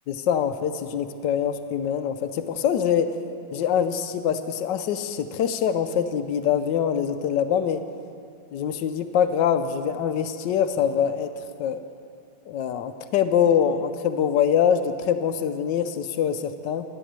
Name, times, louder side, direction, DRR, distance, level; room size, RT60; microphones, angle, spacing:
voice 1, 0.1-3.1 3.5-7.8 8.5-11.3 11.6-11.8 12.5-16.8, left 8 dB, 80° left, 10 dB, 1.3 m, -24 dB
10.0 x 9.7 x 7.5 m, 2.5 s
omnidirectional pair, 1.9 m